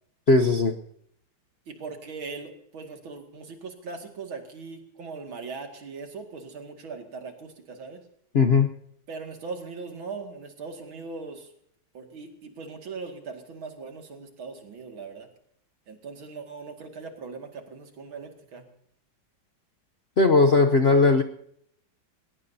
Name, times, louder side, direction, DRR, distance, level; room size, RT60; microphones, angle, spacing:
voice 1, 0.3-0.7 8.3-8.7 20.2-21.2, left 3 dB, 55° left, 5 dB, 0.7 m, -18 dB
voice 2, 1.7-8.0 9.1-11.5 11.9-15.3 15.9-18.7, right 4 dB, 80° right, 4 dB, 3.0 m, -40 dB
22.0 x 19.5 x 2.8 m, 0.70 s
omnidirectional pair, 2.2 m